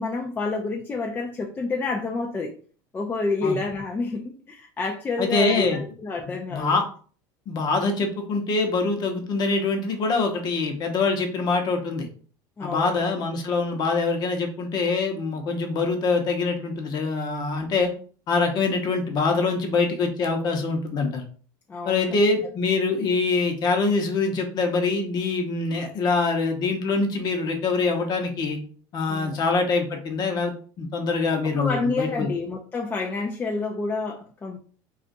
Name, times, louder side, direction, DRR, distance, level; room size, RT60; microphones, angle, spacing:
voice 1, 0.0-2.5 2.9-6.7 12.6-13.0 21.7-22.0 29.1-29.4 31.6-34.6, left 3 dB, 20° left, 0 dB, 0.4 m, -28 dB
voice 2, 5.2-5.8 6.5-6.8 7.5-12.1 12.6-17.9 18.3-21.2 21.9-28.6 28.9-32.3, left 3 dB, 45° left, 4 dB, 0.8 m, -24 dB
2.4 x 2.4 x 3.9 m, 0.42 s
supercardioid pair, 115°, 10 cm